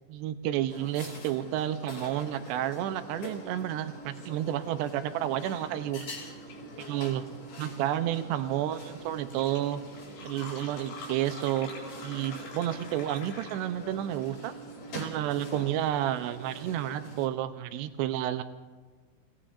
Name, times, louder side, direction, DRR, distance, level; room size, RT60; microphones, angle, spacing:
voice 1, 0.1-6.3 6.8-7.2 7.6-9.8 10.2-11.7 12.0-14.5 14.9-18.4, right 12 dB, 85° right, 10 dB, 2.5 m, -31 dB
sound 1, 0.7-17.3, right 1 dB, 55° left, 6.2 m, -44 dB
Fill (with liquid), 8.8-8.9 9.1-13.9, left 4 dB, 90° left, 5.8 m, -46 dB
29.0 x 17.5 x 2.5 m, 1.4 s
omnidirectional pair, 5.5 m